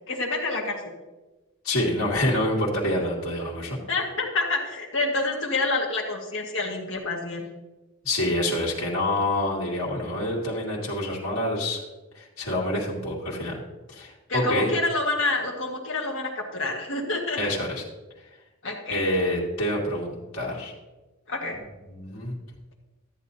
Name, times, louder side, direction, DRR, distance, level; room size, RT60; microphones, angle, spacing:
voice 1, 0.1-0.9 3.9-7.5 14.3-17.5 18.6-19.0 21.3-21.6, left 3 dB, 60° left, 0 dB, 1.7 m, -28 dB
voice 2, 1.6-3.8 8.0-11.8 12.1-13.6 13.9-14.7 17.4-17.8 18.9-20.7 21.9-22.3, left 1 dB, 75° left, -4 dB, 2.3 m, -27 dB
13.0 x 8.4 x 2.8 m, 1.1 s
head